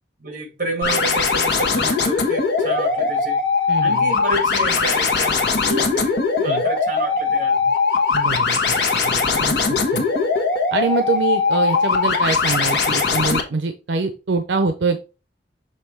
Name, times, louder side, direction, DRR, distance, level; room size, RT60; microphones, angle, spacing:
voice 1, 0.2-3.5 3.8-7.7, right 1 dB, 50° right, 4 dB, 1.9 m, -29 dB
sound 1, 0.8-13.4, left 4 dB, 75° left, 1.5 m, -20 dB
voice 2, 3.7-4.1 6.4-6.6 8.1-10.0 10.7-15.0, right 4 dB, 85° right, 7 dB, 0.6 m, -24 dB
6.7 x 3.1 x 4.5 m, 0.31 s
head